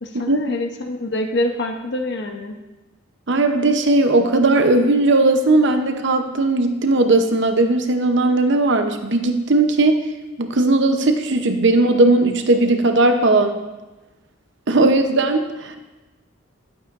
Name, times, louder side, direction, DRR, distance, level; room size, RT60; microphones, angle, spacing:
voice 1, 0.0-2.6, left 1 dB, 60° left, 4 dB, 0.8 m, -25 dB
voice 2, 3.3-10.1 10.4-13.6 14.7-15.8, right 2 dB, 65° right, 6 dB, 0.8 m, -17 dB
11.5 x 8.4 x 2.5 m, 1.1 s
head